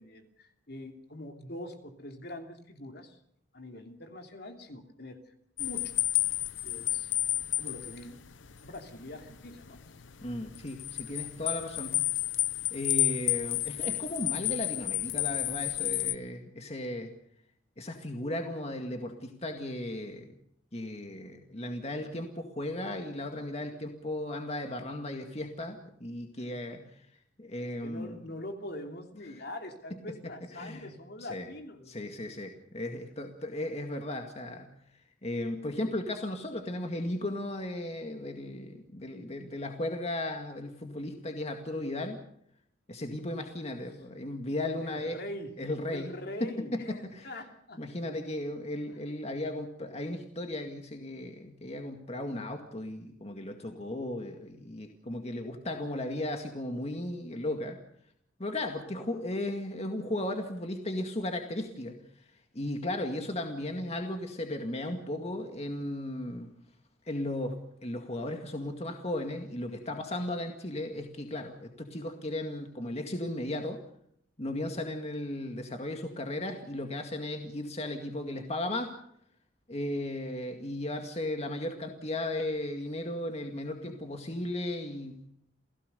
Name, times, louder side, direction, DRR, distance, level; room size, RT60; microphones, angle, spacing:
voice 1, 0.0-3.2 3.5-5.2 5.6-5.9 6.6-7.1 7.6-8.2 8.6-9.8 27.5-31.9 44.8-45.6 45.9-47.8 48.9-49.0, left 1 dB, 55° left, 5 dB, 3.0 m, -43 dB
sound 1, 5.6-16.1, left 15 dB, 80° left, 0.9 m, -31 dB
voice 2, 10.2-12.0 12.7-17.1 17.8-20.3 20.7-27.1 27.4-28.2 30.5-30.9 31.2-31.5 31.9-34.7 35.2-42.2 42.9-45.2 45.6-46.1 46.4-47.3 47.8-57.8 58.4-62.0 62.5-66.5 67.1-67.6 67.8-73.8 74.4-79.0 79.7-85.2, left 1 dB, 35° left, 4 dB, 2.1 m, -36 dB
29.5 x 16.5 x 6.8 m, 0.71 s
head